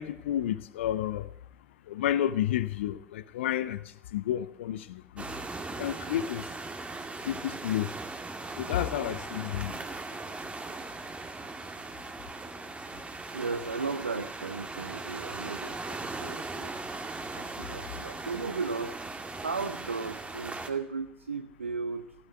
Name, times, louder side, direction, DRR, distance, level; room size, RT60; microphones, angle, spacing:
voice 1, 0.0-1.3 1.9-5.2 5.7-6.5 7.2-8.0 8.5-10.2, left 11 dB, 70° left, 0.8 m, -31 dB
sound 1, 5.2-20.7, right 3 dB, 20° right, 2.2 m, -39 dB
voice 2, 13.3-16.7 17.3-19.0 19.4-22.1, right 4 dB, 85° right, 0.7 m, -35 dB
16.0 x 9.5 x 9.0 m
figure-of-eight pair, 65°, 7 cm